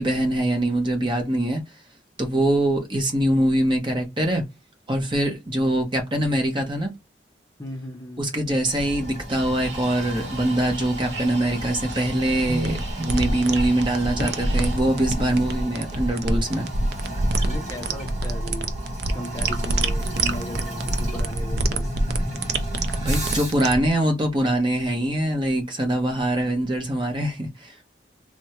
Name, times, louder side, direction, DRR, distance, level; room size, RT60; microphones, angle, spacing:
voice 1, 0.0-1.6 2.2-4.4 4.9-6.9 8.2-16.7 23.0-27.9, right 1 dB, 25° right, 0.9 m, -23 dB
voice 2, 7.6-8.3 17.4-18.7 19.1-21.9, left 1 dB, 20° left, 0.6 m, -36 dB
Toilet flush, 8.6-23.7, equal, 45° right, 1.3 m, -33 dB
sound 1, 9.3-14.8, right 4 dB, 90° right, 0.8 m, -41 dB
sound 2, 11.9-23.9, right 2 dB, 60° right, 0.5 m, -26 dB
3.4 x 2.1 x 2.9 m
head